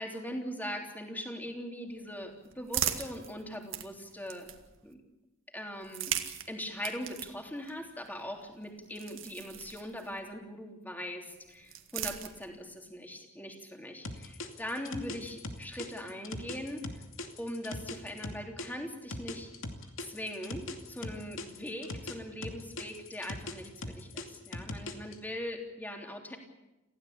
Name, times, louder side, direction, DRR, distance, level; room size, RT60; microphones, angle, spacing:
voice 1, 0.0-4.5 4.8-5.0 5.5-6.1 6.5-17.0 17.4-19.5 20.0-26.4, equal, 10° left, 2 dB, 3.3 m, -41 dB
sound 1, 1.9-4.9 5.7-10.3 11.3-12.8, right 10 dB, 65° right, 2.1 m, -40 dB
sound 2, 14.0-18.7 19.1-22.2 22.4-25.1, left 2 dB, 75° left, 2.6 m, -40 dB
28.0 x 16.0 x 8.7 m, 1.0 s
head